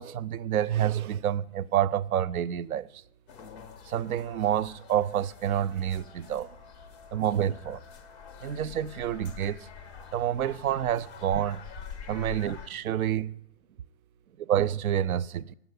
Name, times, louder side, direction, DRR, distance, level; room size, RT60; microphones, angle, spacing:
voice 1, 0.0-2.9 3.9-6.5 7.1-7.8 8.4-9.6 10.1-11.6 12.1-13.3 14.4-15.5, right 10 dB, 70° right, 0.5 m, -28 dB
sound 1, 3.3-12.7, left 7 dB, 10° left, 0.4 m, -46 dB
9.3 x 6.9 x 8.1 m
figure-of-eight pair, 120°, 45 cm